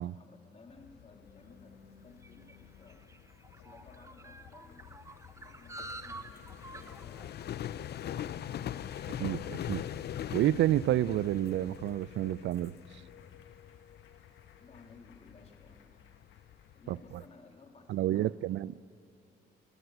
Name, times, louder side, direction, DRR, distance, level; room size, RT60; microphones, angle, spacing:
voice 1, 0.0-3.1 3.5-7.9 14.6-16.0 16.7-18.8, left 3 dB, 35° left, 3.3 m, -58 dB
sound 1, 0.7-17.3, left 10 dB, 55° left, 0.5 m, -43 dB
Applause, 0.9-17.9, left 6 dB, 75° left, 1.9 m, -63 dB
sound 2, 1.5-12.1, right 2 dB, 15° right, 1.0 m, -51 dB
voice 2, 9.2-9.8 10.3-12.7 16.9-17.0 17.9-18.8, right 13 dB, 70° right, 0.4 m, -29 dB
27.0 x 14.0 x 8.1 m
cardioid pair, 90°, 20 cm